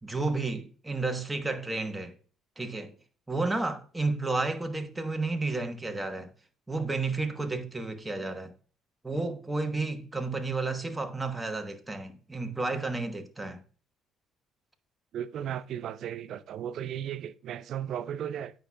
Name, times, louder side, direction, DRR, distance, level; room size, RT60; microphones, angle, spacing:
voice 1, 0.0-2.1 2.6-2.9 3.3-6.3 6.7-8.5 9.0-13.6, right 3 dB, 10° right, 1.1 m, -31 dB
voice 2, 15.1-18.5, right 10 dB, 65° right, 0.5 m, -35 dB
8.8 x 5.4 x 2.3 m
cardioid pair, 95°, 0 cm